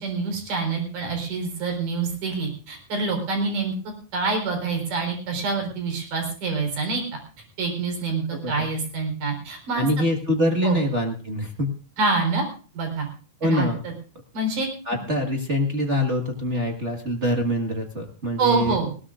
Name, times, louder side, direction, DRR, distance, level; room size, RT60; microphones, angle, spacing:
voice 1, 0.0-3.7 4.1-7.0 7.6-9.9 10.6-10.8 12.0-12.4 12.8-13.1 13.4-13.9 14.3-14.7 18.4-18.9, right 4 dB, 70° right, 4 dB, 5.6 m, -26 dB
voice 2, 8.3-8.7 9.7-11.7 13.4-13.8 14.9-18.8, equal, 40° right, 2 dB, 1.0 m, -24 dB
20.0 x 18.0 x 2.5 m, 0.39 s
omnidirectional pair, 3.8 m